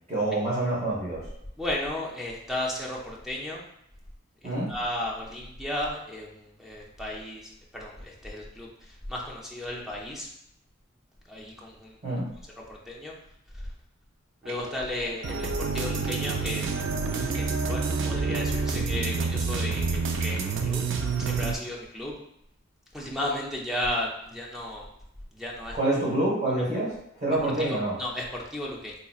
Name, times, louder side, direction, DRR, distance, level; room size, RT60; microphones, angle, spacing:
voice 1, 0.1-1.2 4.4-4.7 12.0-12.3 25.7-26.9 27.2-28.0, right 1 dB, 35° right, -7 dB, 1.1 m, -26 dB
voice 2, 1.6-3.6 4.7-7.4 7.7-8.7 9.1-10.3 11.3-11.9 12.7-13.1 14.4-16.6 17.2-20.8 21.3-22.1 22.9-24.8 25.3-25.8 27.6-28.9, left 1 dB, ahead, -3 dB, 0.5 m, -34 dB
sound 1, 14.5-21.5, right 4 dB, 60° right, 0.4 m, -28 dB
4.1 x 2.8 x 2.3 m, 0.75 s
head